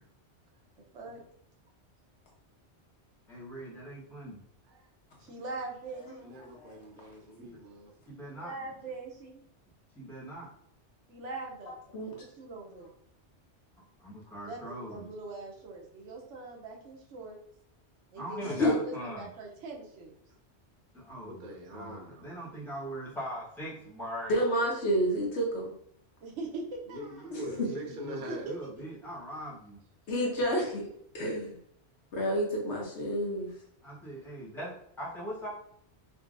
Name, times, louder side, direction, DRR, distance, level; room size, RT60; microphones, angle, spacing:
voice 1, 3.3-4.4 7.4-7.6 8.1-8.7 9.9-10.5 14.0-15.1 18.2-19.3 20.9-24.4 27.6-29.8 33.8-35.5, equal, ahead, -7 dB, 1.0 m, -41 dB
voice 2, 5.2-6.3 8.3-9.4 11.1-11.8 12.2-12.9 14.4-17.4 18.1-20.1 26.2-26.6 26.9-27.4 28.3-28.4, right 3 dB, 85° right, 0 dB, 1.0 m, -42 dB
voice 3, 6.2-7.9 21.2-22.3 26.9-28.5, equal, 50° right, 1 dB, 0.7 m, -43 dB
voice 4, 24.3-25.7 27.3-27.4 30.1-30.9 31.1-31.6 32.1-33.5, equal, 75° left, -2 dB, 1.0 m, -29 dB
3.7 x 2.2 x 2.4 m, 0.68 s
omnidirectional pair, 1.2 m